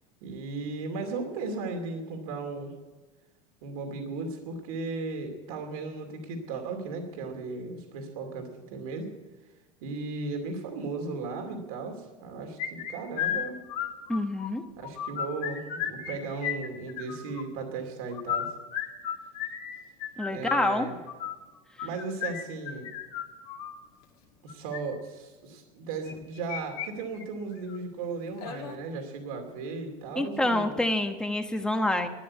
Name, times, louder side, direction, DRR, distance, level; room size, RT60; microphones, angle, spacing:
voice 1, 0.2-2.7 3.6-9.1 9.8-13.6 14.8-18.5 20.3-21.0 21.8-22.9 24.4-30.8, right 3 dB, 85° right, 3 dB, 2.6 m, -36 dB
sound 1, 12.6-14.5 14.8-16.1 16.4-17.4 18.1-23.7 24.5-24.8 26.0-26.9 27.1-27.2 27.7-27.8 28.4-28.8, left 9 dB, 60° left, 2.2 m, -34 dB
voice 2, 14.1-14.6 20.2-20.9 30.2-32.1, left 1 dB, 5° left, 6 dB, 1.1 m, -27 dB
12.5 x 10.0 x 8.5 m, 1.2 s
supercardioid pair, 140°, 18 cm